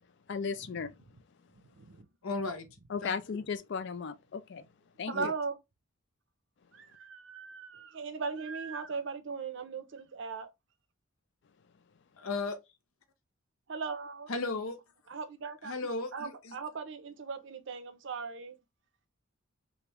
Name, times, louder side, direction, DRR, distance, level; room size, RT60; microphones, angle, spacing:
voice 1, 0.3-0.9 2.9-4.6 5.0-5.3, left 5 dB, 55° left, 0.4 m, -36 dB
voice 2, 1.5-2.1 5.1-5.6 6.7-10.5 13.7-14.3 15.1-18.6, right 5 dB, 60° right, 0.5 m, -39 dB
voice 3, 2.2-2.7 3.0-3.1 5.1-5.3 12.2-12.6 14.3-14.8 15.6-16.5, left 3 dB, 80° left, 0.7 m, -35 dB
3.0 x 2.4 x 3.3 m
head